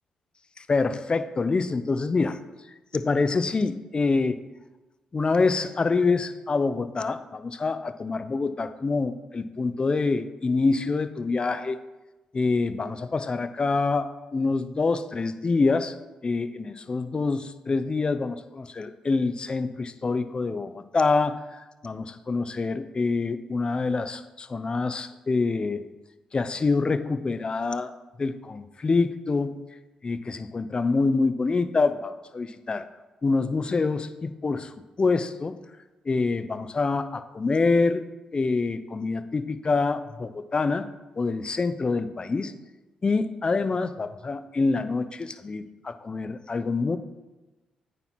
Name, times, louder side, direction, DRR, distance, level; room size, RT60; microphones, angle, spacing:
voice 1, 0.6-2.4 2.9-4.4 5.1-11.8 12.3-15.9 16.2-25.8 26.3-27.9 28.2-29.6 30.0-32.9 33.2-34.7 35.0-35.6 36.1-38.0 38.3-40.9 41.2-42.5 43.0-47.0, left 4 dB, 35° left, 11 dB, 0.5 m, -26 dB
8.9 x 3.1 x 5.8 m, 1.1 s
hypercardioid pair, 40°, 3 cm